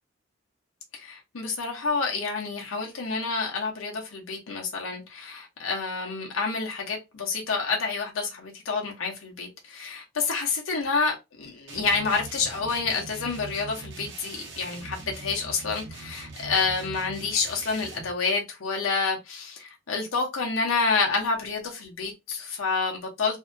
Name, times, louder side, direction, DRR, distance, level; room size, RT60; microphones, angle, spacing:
voice 1, 0.9-23.4, left 4 dB, 75° left, 0.7 m, -28 dB
sound 1, 11.7-18.2, right 2 dB, 60° right, 0.8 m, -42 dB
2.6 x 2.2 x 2.5 m
head